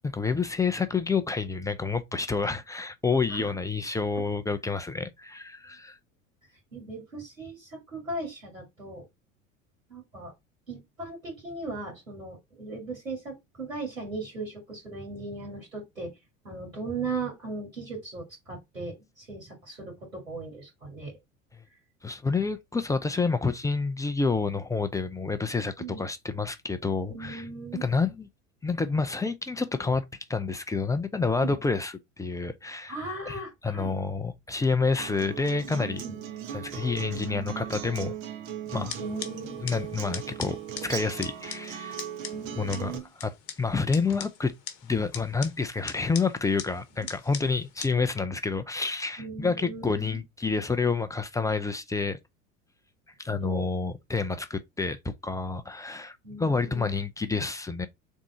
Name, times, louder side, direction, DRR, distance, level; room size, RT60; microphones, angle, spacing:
voice 1, 0.0-6.0 22.0-27.4 27.8-28.3 28.6-30.0 30.3-33.0 33.3-36.0 36.5-38.1 38.7-38.9 39.6-42.0 42.6-44.5 44.8-52.2 53.2-55.0 55.2-57.9, left 4 dB, 10° left, 0.4 m, -28 dB
voice 2, 6.7-9.0 9.9-10.3 10.7-16.1 16.4-21.2 25.8-26.0 27.1-27.8 31.4-31.5 32.9-33.9 35.8-36.2 39.0-39.7 42.3-43.0 49.2-50.2 53.3-53.7 56.2-56.9, right 3 dB, 90° right, 2.2 m, -38 dB
Acoustic guitar, 35.0-43.0, right 9 dB, 50° right, 1.1 m, -38 dB
sound 1, 38.7-47.9, left 9 dB, 55° left, 1.0 m, -42 dB
3.6 x 3.6 x 4.1 m
figure-of-eight pair, 75°, 39 cm